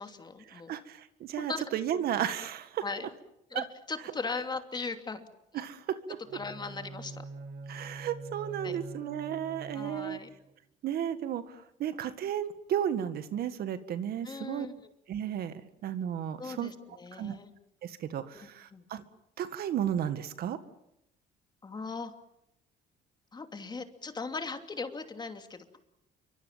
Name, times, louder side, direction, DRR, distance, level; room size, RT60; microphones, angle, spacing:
voice 1, 0.0-0.8 1.4-1.6 2.8-3.1 3.5-5.3 6.3-7.2 8.6-8.8 9.7-10.3 14.2-14.9 16.4-17.5 18.3-18.8 21.6-22.1 23.3-25.8, left 4 dB, 25° left, 6 dB, 2.8 m, -39 dB
voice 2, 0.5-2.8 3.5-3.6 5.5-6.0 7.7-10.2 10.8-14.7 15.1-16.7 17.1-17.4 17.8-19.0 19.4-20.6, right 10 dB, 65° right, 11 dB, 1.9 m, -33 dB
Bowed string instrument, 6.2-10.5, right 3 dB, 85° right, 5.8 m, -44 dB
28.0 x 24.5 x 7.5 m, 0.82 s
cardioid pair, 110°, 17 cm